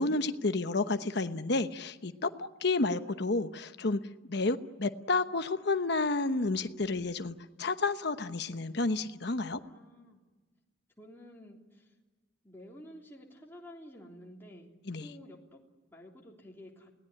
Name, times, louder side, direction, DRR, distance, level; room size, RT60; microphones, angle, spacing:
voice 1, 0.0-9.6 14.9-15.1, left 3 dB, 55° left, 9 dB, 1.0 m, -31 dB
voice 2, 9.5-10.2 11.0-12.0 12.4-14.7 15.0-15.6 15.9-16.9, equal, 10° left, -2 dB, 3.5 m, -51 dB
28.5 x 18.5 x 9.9 m, 1.3 s
head